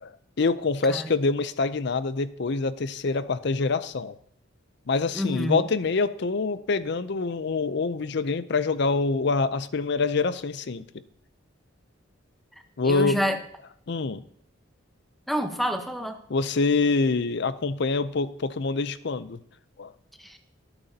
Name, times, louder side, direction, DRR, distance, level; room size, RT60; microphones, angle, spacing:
voice 1, 0.0-4.2 4.9-10.8 12.8-13.2 13.9-14.2 16.3-19.4 19.8-19.9, left 4 dB, 55° left, 14 dB, 0.5 m, -25 dB
voice 2, 5.1-5.6 12.8-13.4 15.3-16.2 20.2-20.4, equal, ahead, 5 dB, 0.9 m, -28 dB
17.0 x 8.9 x 2.8 m, 0.70 s
head